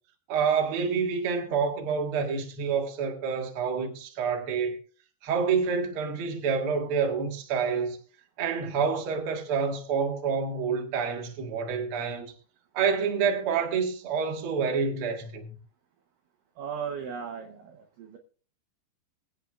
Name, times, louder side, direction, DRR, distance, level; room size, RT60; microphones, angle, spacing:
voice 1, 0.3-4.8 5.2-8.0 8.4-12.3 12.7-15.6, right 6 dB, 65° right, 1.3 m, -28 dB
voice 2, 16.6-17.5 18.0-18.2, right 7 dB, 85° right, 1.9 m, -35 dB
24.0 x 8.2 x 2.4 m
omnidirectional pair, 5.2 m